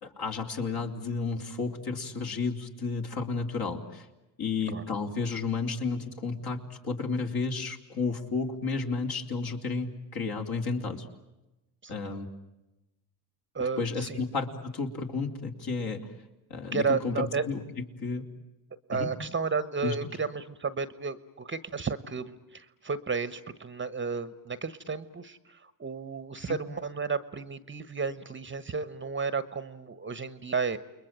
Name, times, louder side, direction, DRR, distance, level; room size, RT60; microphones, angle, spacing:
voice 1, 0.0-4.1 4.4-11.1 11.9-12.3 13.8-16.0 16.5-17.6 18.0-18.2 18.9-19.1 19.8-19.9, left 4 dB, 50° left, 3 dB, 3.9 m, -32 dB
voice 2, 13.5-14.2 16.7-17.4 18.9-30.8, right 5 dB, 25° right, 14 dB, 1.2 m, -32 dB
29.5 x 21.5 x 9.1 m, 0.99 s
supercardioid pair, 90°, 49 cm